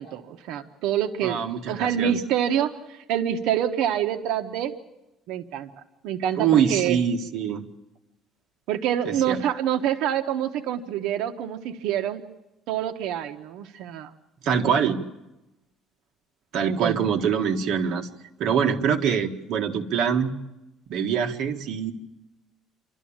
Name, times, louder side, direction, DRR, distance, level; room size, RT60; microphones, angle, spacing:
voice 1, 0.0-4.7 5.3-5.7 6.0-7.0 8.7-12.2 12.7-14.1 16.7-17.0, right 10 dB, 75° right, 7 dB, 1.1 m, -26 dB
voice 2, 1.2-2.2 6.3-7.6 9.1-9.4 14.4-15.0 16.5-18.1 18.4-20.3 20.9-21.9, right 7 dB, 55° right, 2 dB, 1.7 m, -24 dB
28.0 x 12.5 x 8.8 m, 0.97 s
cardioid pair, 170°, 0 cm